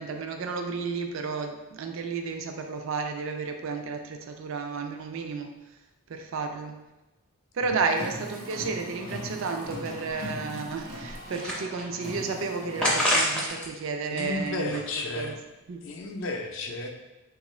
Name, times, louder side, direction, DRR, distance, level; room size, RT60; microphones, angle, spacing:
voice 1, 0.0-5.5 6.1-6.8 7.5-14.8 15.2-15.3 15.7-15.8, right 4 dB, 60° right, 5 dB, 0.3 m, -32 dB
Car, 7.8-13.5, equal, 80° right, 0.8 m, -40 dB
sound 1, 10.8-12.1 12.8-13.7 14.0-15.3, equal, 5° left, 0.4 m, -28 dB
voice 2, 14.1-15.4 15.8-16.9, left 2 dB, 60° left, 3 dB, 0.4 m, -33 dB
3.5 x 2.4 x 3.0 m, 1.0 s
head